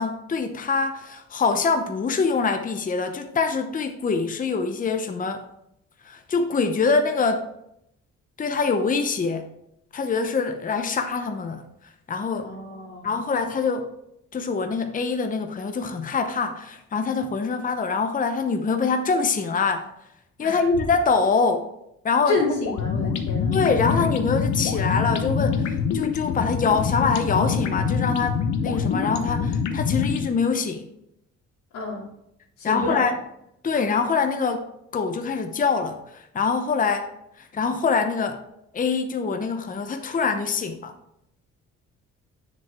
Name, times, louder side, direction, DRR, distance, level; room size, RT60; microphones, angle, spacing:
voice 1, 0.0-5.5 6.0-7.4 8.4-9.5 9.9-11.6 12.1-12.5 13.0-13.9 14.3-19.9 20.4-21.7 22.0-22.4 23.5-30.9 32.6-33.1 33.6-37.1 37.4-38.4 38.7-40.9, left 5 dB, 25° left, 6 dB, 0.7 m, -24 dB
voice 2, 12.4-13.1 20.4-20.6 22.3-23.6 31.7-32.1 32.6-33.1, left 2 dB, 85° left, -6 dB, 2.6 m, -28 dB
sound 1, 22.7-30.3, left 6 dB, 65° left, 0.9 m, -25 dB
7.6 x 6.4 x 3.5 m, 0.79 s
cardioid pair, 90°, 30 cm